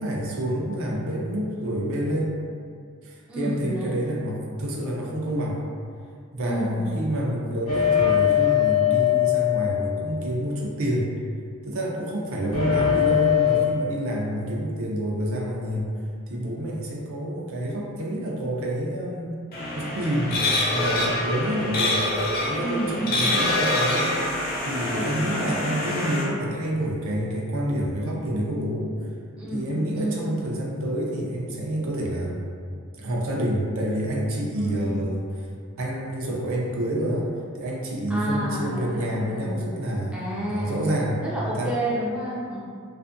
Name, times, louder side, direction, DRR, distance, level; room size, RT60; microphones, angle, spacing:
voice 1, 0.0-2.3 3.0-5.6 6.3-11.1 11.6-15.9 16.3-19.4 19.7-22.0 22.5-24.4 24.6-28.9 29.5-32.4 33.0-35.3 35.8-40.2 40.5-41.2 41.5-41.7, right 1 dB, 65° right, -3 dB, 0.5 m, -28 dB
voice 2, 3.3-4.0 6.4-6.9 22.6-23.3 24.9-26.1 29.4-30.4 34.5-35.0 38.1-39.7 40.1-42.6, right 1 dB, 5° right, -7 dB, 0.4 m, -30 dB
sound 1, 7.7-10.7 12.5-13.6, left 11 dB, 75° left, 0.8 m, -21 dB
sound 2, 19.5-26.2, left 1 dB, 45° left, 0.6 m, -26 dB
2.5 x 2.4 x 2.5 m, 2.2 s
head